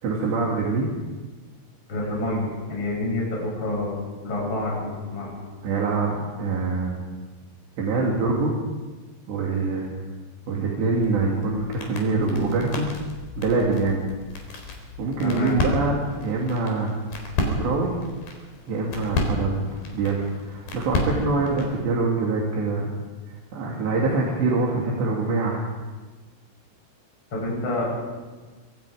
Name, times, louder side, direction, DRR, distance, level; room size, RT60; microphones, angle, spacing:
voice 1, 0.0-0.9 5.6-6.9 7.8-8.5 9.3-9.9 10.5-12.9 13.4-14.0 15.0-16.9 17.4-17.9 18.7-22.9 23.5-25.7, right 3 dB, 60° right, -3 dB, 4.8 m, -24 dB
voice 2, 1.9-5.3 15.2-15.6 27.3-27.9, left 2 dB, 25° left, -4 dB, 8.3 m, -28 dB
sound 1, 10.9-21.8, left 2 dB, 50° left, 5.6 m, -32 dB
28.0 x 25.0 x 5.1 m, 1.3 s
omnidirectional pair, 5.7 m